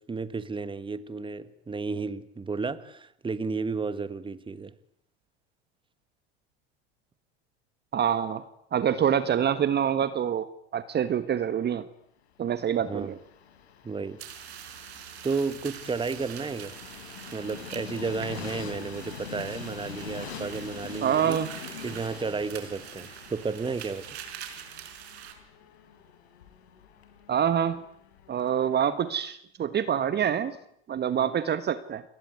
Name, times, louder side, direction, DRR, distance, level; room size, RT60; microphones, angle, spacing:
voice 1, 0.0-4.7 12.9-13.1 13.8-14.2 15.2-16.8 17.3-21.4 21.8-24.1, right 4 dB, 15° right, 1.8 m, -32 dB
voice 2, 7.9-8.4 8.7-10.5 10.7-11.8 12.4-13.2 21.0-21.5 27.3-27.8 28.3-30.6 30.9-32.0, right 9 dB, 30° right, 1.5 m, -26 dB
Train, 12.5-28.5, left 7 dB, 80° left, 5.1 m, -44 dB
sound 1, 14.2-25.3, right 9 dB, 85° right, 5.1 m, -44 dB
28.5 x 20.5 x 9.6 m
hypercardioid pair, 95°, 32 cm